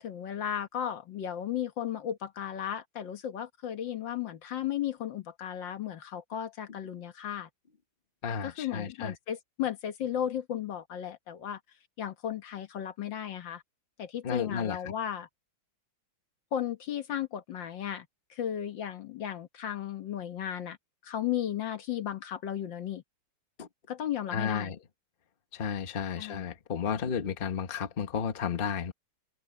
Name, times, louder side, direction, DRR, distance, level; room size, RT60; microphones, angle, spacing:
voice 1, 0.0-7.5 8.4-11.6 12.0-13.6 14.0-15.3 16.5-20.8 21.0-23.0 23.9-24.7 26.2-26.5, left 10 dB, 70° left, 1.9 m, -35 dB
voice 2, 8.2-9.1 14.2-14.9 23.6-23.7 24.3-24.8 25.5-28.9, left 7 dB, 35° left, 1.2 m, -32 dB
omnidirectional pair, 2.1 m